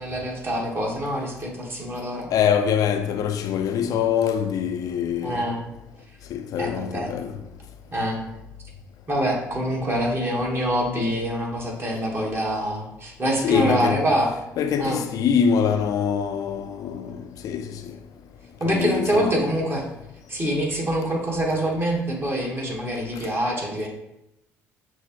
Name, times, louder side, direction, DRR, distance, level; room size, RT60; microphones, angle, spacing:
voice 1, 0.0-2.3 5.2-5.6 6.6-7.2 7.9-8.2 9.1-14.3 14.8-15.0 18.6-19.8 20.3-23.9, right 1 dB, 35° right, 1.2 m, -25 dB
voice 2, 2.3-5.5 6.3-7.3 13.4-14.0 14.6-17.2 17.4-17.7 18.7-19.4, left 7 dB, 60° left, 0.4 m, -24 dB
6.2 x 2.1 x 2.9 m
hypercardioid pair, 60°, 7 cm